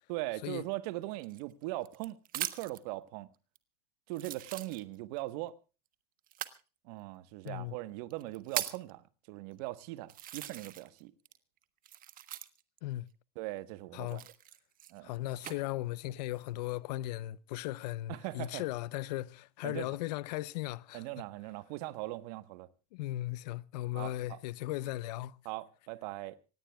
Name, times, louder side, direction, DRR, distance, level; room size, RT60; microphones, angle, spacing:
voice 1, 0.1-3.3 4.1-5.5 6.8-11.1 13.4-14.2 14.9-15.1 18.1-18.7 19.6-20.0 20.9-22.7 23.9-24.4 25.4-26.4, right 18 dB, 65° right, 1.2 m, -40 dB
sound 1, 1.2-2.9 3.6-3.7 4.1-5.2 6.3-6.6 7.5-7.6 8.1-8.9 9.6-9.7 10.1-11.0 11.3-12.8 14.0-15.6 16.2-16.7, right 12 dB, 40° right, 1.3 m, -40 dB
voice 2, 7.4-7.8 12.8-13.1 13.9-14.2 15.0-21.0 22.9-25.4, left 16 dB, 75° left, 0.7 m, -37 dB
26.0 x 18.0 x 2.3 m
hypercardioid pair, 100°, 21 cm